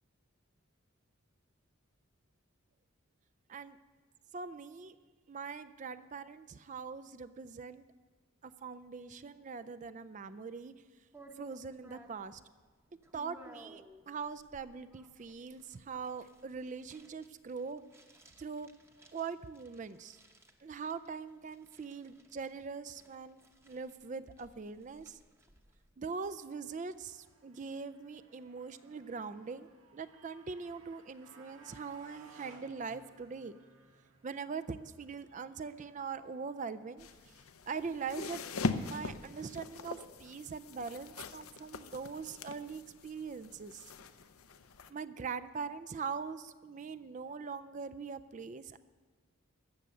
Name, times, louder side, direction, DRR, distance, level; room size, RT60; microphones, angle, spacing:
voice 1, 4.3-4.9 5.3-7.8 8.4-10.7 11.4-12.4 13.1-17.8 18.4-18.7 19.1-20.2 20.6-25.2 26.0-33.6 34.2-37.3 37.7-38.4 38.8-43.8 44.9-48.8, right 5 dB, 35° right, 12 dB, 0.4 m, -42 dB
sound 1, 11.1-25.9, right 1 dB, 10° right, 0.8 m, -60 dB
Motorcycle, 26.2-38.3, right 3 dB, 75° right, 1.7 m, -62 dB
sound 2, 37.0-44.9, left 3 dB, 80° left, 0.7 m, -41 dB
14.0 x 6.7 x 8.9 m, 1.4 s
head